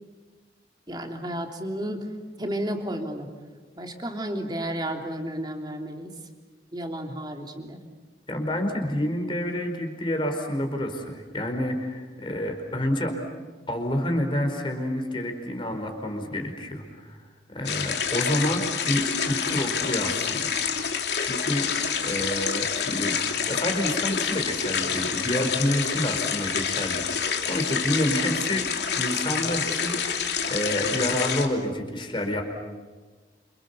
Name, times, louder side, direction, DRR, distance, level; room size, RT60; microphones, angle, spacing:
voice 1, 0.9-2.1 2.4-3.3 3.7-6.1 6.7-7.8, right 1 dB, 25° right, 2 dB, 3.2 m, -32 dB
voice 2, 8.3-13.1 13.7-17.2 17.5-20.6 21.2-21.7 22.0-23.2 23.5-28.7 29.0-32.4, left 1 dB, 25° left, 4 dB, 4.7 m, -28 dB
sound 1, 17.6-31.4, left 6 dB, 65° left, 3.0 m, -27 dB
28.5 x 28.0 x 7.0 m, 1.4 s
head